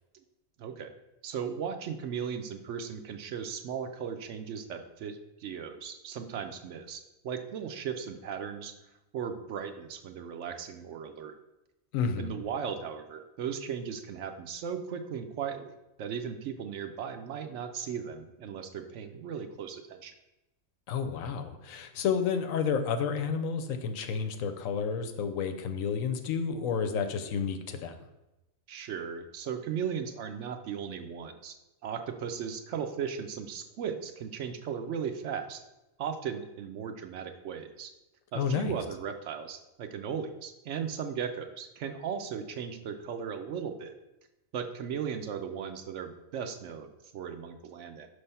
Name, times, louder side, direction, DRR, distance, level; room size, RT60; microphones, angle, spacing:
voice 1, 0.6-0.9 1.2-8.7 9.1-11.3 12.2-20.1 28.7-31.5 31.8-35.6 36.0-37.9 38.3-43.9 44.5-48.1, right 7 dB, 70° right, 7 dB, 0.8 m, -37 dB
voice 2, 11.9-12.3 20.9-27.9 38.3-38.8, left 6 dB, 75° left, 8 dB, 1.0 m, -30 dB
6.0 x 3.3 x 5.5 m, 0.96 s
omnidirectional pair, 1.4 m